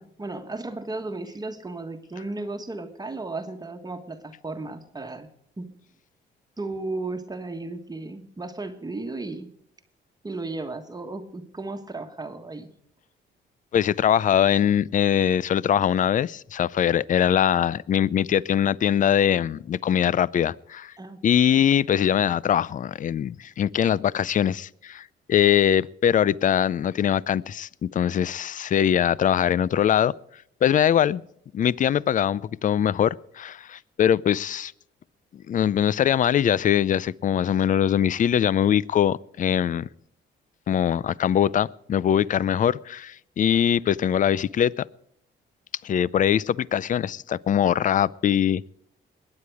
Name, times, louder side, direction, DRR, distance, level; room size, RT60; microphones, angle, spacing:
voice 1, 0.0-5.3 5.6-5.7 6.6-9.5 10.2-12.7 21.0-21.5, right 2 dB, 20° right, 5 dB, 1.5 m, -35 dB
voice 2, 13.7-20.9 21.2-30.1 30.6-31.2 31.5-34.7 35.3-39.9 40.7-44.9 45.8-48.7, left 9 dB, 40° left, 23 dB, 0.4 m, -22 dB
21.0 x 9.7 x 4.8 m, 0.70 s
cardioid pair, 90°, 20 cm